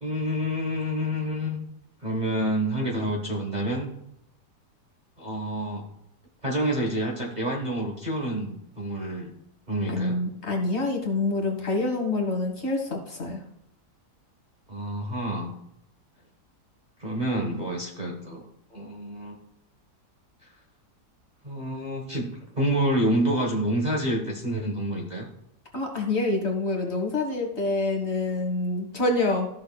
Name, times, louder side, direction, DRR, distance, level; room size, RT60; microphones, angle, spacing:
voice 1, 0.0-1.6 2.0-3.9 5.2-5.8 6.4-9.3 9.7-10.2 14.7-15.5 17.0-18.4 18.7-19.4 21.4-25.3, right 1 dB, 30° right, -2 dB, 1.1 m, -28 dB
voice 2, 9.9-13.4 25.7-29.5, left 2 dB, 40° left, 1 dB, 1.7 m, -26 dB
14.0 x 6.3 x 2.3 m, 0.80 s
omnidirectional pair, 1.8 m